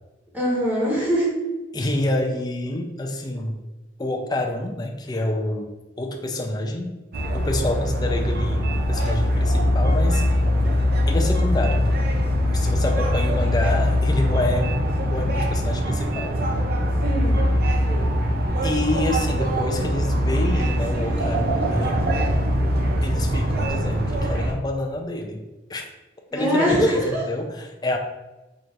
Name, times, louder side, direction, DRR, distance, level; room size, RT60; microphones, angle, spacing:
voice 1, 0.3-1.3 17.0-17.4 26.3-27.2, equal, 10° right, -7 dB, 1.4 m, -22 dB
voice 2, 1.7-3.6 4.0-5.7 6.0-7.0 7.3-10.3 11.1-12.2 12.4-16.3 18.6-22.1 23.0-25.4 25.7-25.8 26.3-28.0, left 1 dB, 20° left, 2 dB, 0.4 m, -27 dB
sound 1, 7.1-24.5, equal, 55° right, 0.6 m, -22 dB
4.9 x 3.0 x 2.6 m, 1.1 s
head